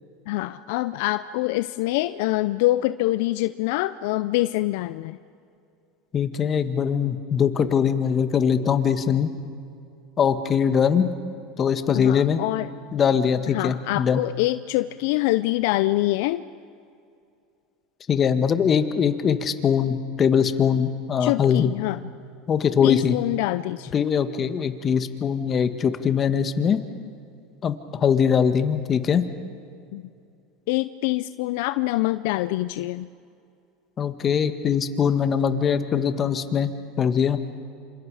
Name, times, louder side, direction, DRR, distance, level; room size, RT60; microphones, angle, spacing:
voice 1, 0.3-5.2 11.9-12.7 13.5-16.4 21.2-22.0 22.8-23.9 29.9-30.0 30.7-33.1, left 18 dB, 75° left, 13 dB, 0.5 m, -25 dB
voice 2, 6.1-9.3 10.2-11.1 11.6-12.4 12.9-14.2 18.1-21.7 22.5-23.2 23.9-26.8 27.6-29.2 34.0-36.7 37.0-37.4, left 7 dB, 35° left, 9 dB, 1.8 m, -22 dB
27.5 x 27.0 x 5.0 m, 2.5 s
supercardioid pair, 100°, 0 cm